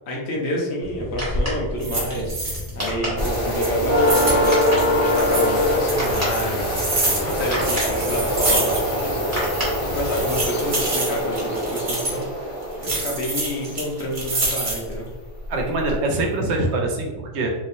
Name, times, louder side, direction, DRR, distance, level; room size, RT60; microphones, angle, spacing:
voice 1, 0.1-15.1, equal, 65° left, -2 dB, 1.1 m, -29 dB
sound 1, 0.8-10.5, equal, 15° right, 1.2 m, -31 dB
sound 2, 1.1-1.4 1.8-2.9 3.2-5.5 5.9-9.1 9.3-9.4 10.0-12.2 12.8-14.9 15.4-16.0, right 2 dB, 45° right, 1.0 m, -27 dB
sound 3, 3.2-13.8 15.8-15.9 16.5-16.6, equal, 30° left, 0.8 m, -23 dB
voice 2, 15.5-17.5, right 2 dB, 70° right, 2 dB, 0.9 m, -24 dB
3.5 x 3.0 x 2.6 m, 1.2 s
omnidirectional pair, 1.2 m